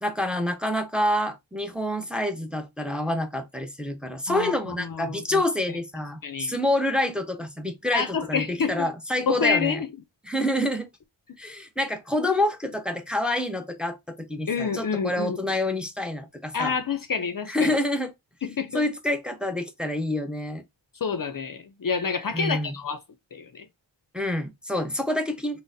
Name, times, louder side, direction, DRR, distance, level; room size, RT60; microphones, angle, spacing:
voice 1, 0.0-9.8 10.2-10.9 11.4-16.7 17.5-18.1 18.7-20.6 22.3-22.7 24.1-25.6, left 1 dB, ahead, 0.6 m, -27 dB
voice 2, 4.3-5.4 6.2-6.6 7.9-8.9 9.3-9.9 14.5-15.4 16.5-17.8 18.4-18.8 21.0-23.0 23.3-23.7, left 5 dB, 50° left, 0.5 m, -28 dB
3.8 x 2.0 x 2.5 m
cardioid pair, 45°, 45 cm